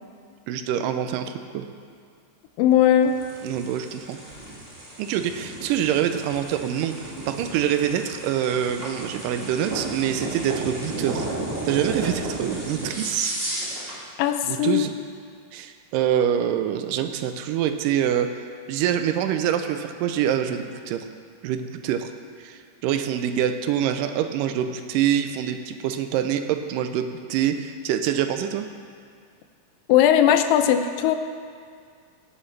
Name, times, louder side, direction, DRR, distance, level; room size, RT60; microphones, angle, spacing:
voice 1, 0.5-1.7 3.4-4.2 5.0-11.3 11.7-13.4 14.4-14.9 15.5-18.4 18.7-21.1 21.4-22.1 22.4-28.7, right 9 dB, 85° right, 8 dB, 2.2 m, -25 dB
voice 2, 2.6-3.1 14.2-14.9 29.9-31.1, left 10 dB, 90° left, 8 dB, 2.3 m, -18 dB
sound 1, 3.0-14.0, right 1 dB, 25° right, 1.3 m, -33 dB
17.5 x 8.2 x 3.3 m, 2.1 s
omnidirectional pair, 3.8 m